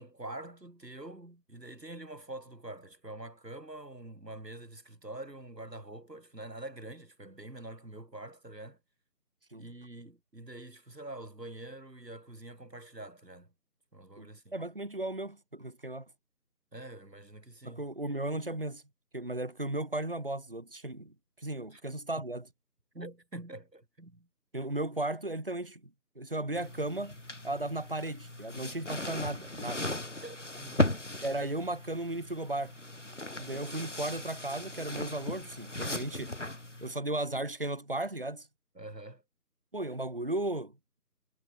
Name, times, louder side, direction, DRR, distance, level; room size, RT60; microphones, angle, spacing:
voice 1, 0.0-8.8 9.6-13.5 13.9-14.5 16.7-17.8 21.7-21.8 22.9-24.3 30.2-30.8 38.8-39.2, right 2 dB, 80° right, 4.2 m, -45 dB
voice 2, 14.2-16.1 17.6-18.8 19.1-22.5 24.5-25.8 26.2-27.2 27.4-29.9 31.2-32.7 33.4-36.3 36.8-38.5 39.7-40.7, right 1 dB, 35° right, 2.8 m, -35 dB
sound 1, 26.5-36.9, left 1 dB, 50° left, 0.7 m, -37 dB
figure-of-eight pair, 175°, 49 cm